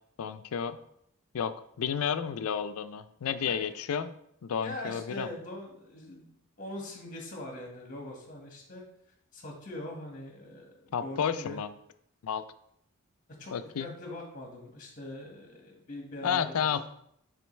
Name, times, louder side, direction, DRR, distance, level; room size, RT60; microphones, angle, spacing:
voice 1, 0.2-0.8 1.3-4.1 4.4-5.3 10.9-11.7 12.2-12.4 13.5-13.9 16.2-16.8, left 7 dB, 80° left, 12 dB, 0.4 m, -31 dB
voice 2, 3.5-3.8 4.6-8.8 9.3-11.6 13.4-13.5 13.8-16.8, left 1 dB, 40° left, 0 dB, 1.5 m, -42 dB
8.4 x 3.8 x 3.2 m, 0.73 s
head